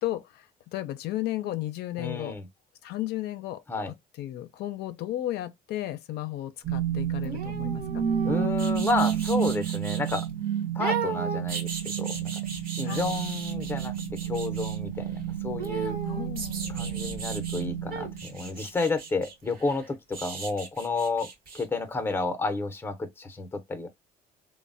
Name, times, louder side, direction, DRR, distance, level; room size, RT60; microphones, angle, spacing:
voice 1, 0.0-2.4 2.8-8.0 12.8-13.1 16.0-17.0, left 14 dB, 75° left, 0.4 m, -34 dB
voice 2, 2.0-2.5 3.7-3.9 8.2-10.3 10.8-12.3 12.8-13.9 14.2-16.0 16.7-21.3 21.5-23.9, left 3 dB, 15° left, 0.6 m, -31 dB
sound 1, 6.6-18.6, right 9 dB, 35° right, 0.5 m, -31 dB
sound 2, 7.2-10.3 10.8-14.8 15.6-17.6 17.9-21.7 22.0-22.1, right 5 dB, 60° right, 0.9 m, -37 dB
3.0 x 2.0 x 2.5 m
cardioid pair, 110°, 17 cm